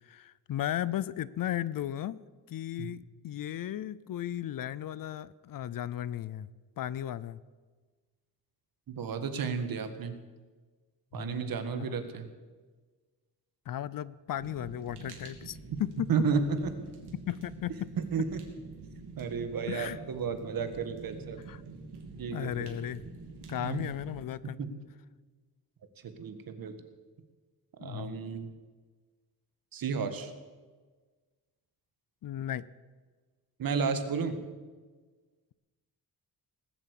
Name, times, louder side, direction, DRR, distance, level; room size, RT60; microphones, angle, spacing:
voice 1, 0.1-2.2 2.5-6.5 6.8-7.4 11.1-11.4 11.7-12.0 13.7-16.1 17.3-17.7 19.7-20.0 21.5-21.6 22.3-23.0 23.5-24.6 27.8-28.2 32.2-32.7, left 11 dB, 60° left, 19 dB, 0.5 m, -35 dB
voice 2, 8.9-10.2 11.1-12.3 16.1-16.7 18.0-18.4 19.2-21.4 22.2-22.7 23.6-23.9 24.6-24.8 26.0-26.8 27.8-28.5 29.7-30.3 33.6-34.4, right 5 dB, 60° right, 8 dB, 1.6 m, -32 dB
Fire, 14.4-24.2, right 4 dB, 85° right, 3.0 m, -47 dB
19.5 x 8.0 x 8.4 m, 1.4 s
wide cardioid pair, 170°, 39 cm